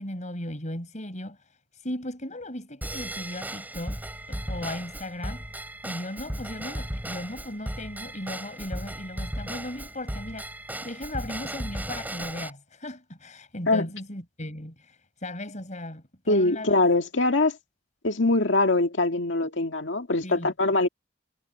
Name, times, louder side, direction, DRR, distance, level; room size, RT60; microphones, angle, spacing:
voice 1, 0.0-4.0 4.3-5.4 5.8-10.5 10.8-16.8 20.2-20.5, left 1 dB, 40° left, 6.8 m, -37 dB
Drum kit / Drum / Bell, 2.8-12.5, right 1 dB, 10° right, 5.7 m, -36 dB
voice 2, 16.3-17.6 18.0-20.9, left 2 dB, 70° left, 2.1 m, -23 dB
head